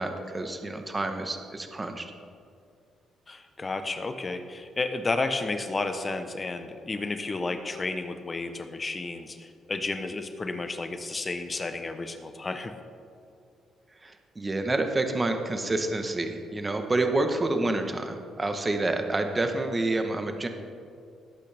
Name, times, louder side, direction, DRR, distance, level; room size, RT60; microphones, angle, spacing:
voice 1, 0.0-2.1 14.0-20.5, right 2 dB, 20° right, 6 dB, 1.1 m, -28 dB
voice 2, 3.3-12.7, left 3 dB, 30° left, 7 dB, 0.9 m, -32 dB
18.5 x 8.4 x 3.5 m, 2.4 s
cardioid pair, 90°, 0 cm